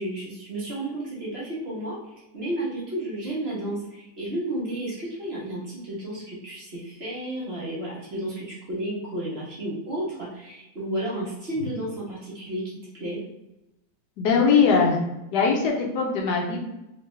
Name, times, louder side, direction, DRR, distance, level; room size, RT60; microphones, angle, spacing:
voice 1, 0.0-2.0 2.3-13.2, right 1 dB, 40° right, -6 dB, 1.3 m, -32 dB
voice 2, 14.2-15.0 15.3-16.6, left 5 dB, 70° left, 1 dB, 1.2 m, -21 dB
3.6 x 3.3 x 3.1 m, 0.92 s
omnidirectional pair, 1.9 m